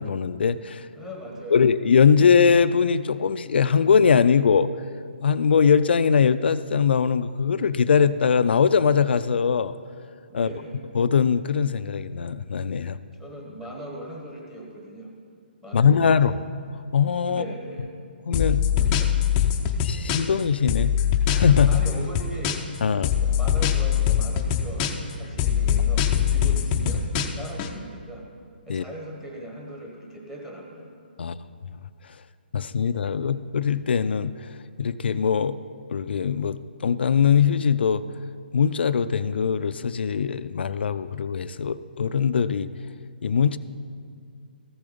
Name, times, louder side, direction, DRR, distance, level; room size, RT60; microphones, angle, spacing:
voice 1, 0.0-0.9 1.5-4.7 5.2-9.7 10.3-10.5 10.9-13.0 15.7-16.4 16.9-17.4 18.3-18.7 19.8-20.9 21.3-21.8 22.8-23.1 28.7-28.8 31.2-31.4 32.5-34.3 34.8-35.6 35.9-38.0 38.5-42.7 43.2-43.6, left 6 dB, 75° left, 13 dB, 0.4 m, -21 dB
voice 2, 0.8-1.6 10.3-10.8 13.2-15.1 15.6-16.4 17.3-17.9 18.8-19.1 21.7-22.6 23.0-28.3 28.7-31.4 33.2-33.4, right 1 dB, 5° right, -1 dB, 1.3 m, -39 dB
sound 1, 18.3-20.4 20.7-22.8 23.0-25.1 25.4-27.7, left 9 dB, 20° left, 0.5 m, -22 dB
14.0 x 7.0 x 5.1 m, 2.3 s
hypercardioid pair, 160°, 6 cm